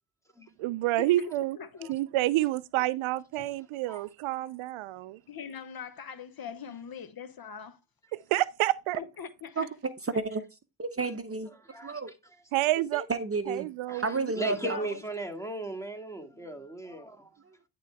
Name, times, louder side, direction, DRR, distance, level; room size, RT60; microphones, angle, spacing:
voice 1, 0.6-1.6 1.9-5.2 8.3-9.0 12.5-13.0 13.5-14.3, right 16 dB, 75° right, 0.6 m, -28 dB
voice 2, 1.5-1.9 5.3-7.8 9.0-9.7 14.4-15.0, left 7 dB, 45° left, 1.1 m, -41 dB
voice 3, 10.8-11.5 11.8-12.1 12.9-13.7 14.0-14.9 17.5-17.6, right 4 dB, 30° right, 0.8 m, -31 dB
voice 4, 11.7-12.0 13.9-17.3, right 2 dB, 5° left, 2.3 m, -37 dB
11.0 x 3.9 x 4.6 m
supercardioid pair, 65°, 49 cm